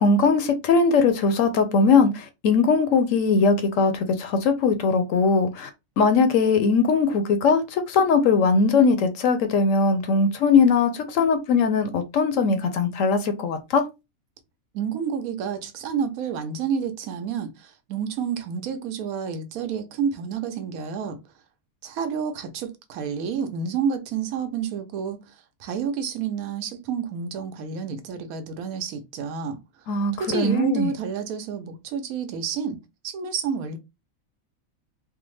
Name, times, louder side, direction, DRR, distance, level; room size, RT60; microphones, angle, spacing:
voice 1, 0.0-3.9 4.2-5.7 6.0-13.8 29.9-30.9, left 4 dB, 70° left, 0.9 m, -20 dB
voice 2, 14.7-21.2 21.8-25.2 25.6-29.6 30.1-32.8 33.0-33.8, right 7 dB, 85° right, 1.1 m, -29 dB
3.5 x 2.0 x 3.1 m
omnidirectional pair, 1.4 m